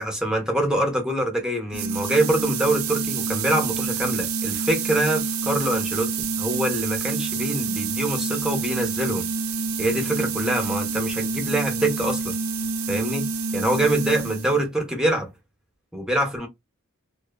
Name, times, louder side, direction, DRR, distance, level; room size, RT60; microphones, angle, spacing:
voice 1, 0.0-9.3 9.8-12.3 12.9-13.3 13.5-15.3 15.9-16.5, right 1 dB, 5° right, 0.7 m, -25 dB
sound 1, 1.7-14.6, right 4 dB, 80° right, 0.4 m, -27 dB
2.6 x 2.4 x 2.4 m
head